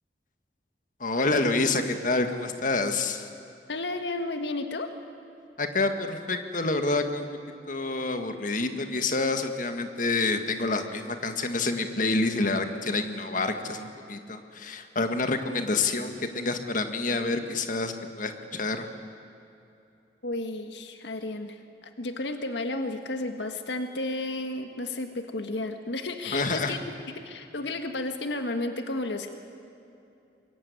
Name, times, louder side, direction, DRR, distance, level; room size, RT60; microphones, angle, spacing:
voice 1, 1.0-3.3 5.6-7.3 7.7-18.9 26.3-26.8, left 3 dB, 50° left, 7 dB, 1.8 m, -28 dB
voice 2, 3.7-4.9 20.2-26.8 27.1-29.4, left 2 dB, 90° left, 6 dB, 1.7 m, -32 dB
25.0 x 22.0 x 9.6 m, 2.8 s
head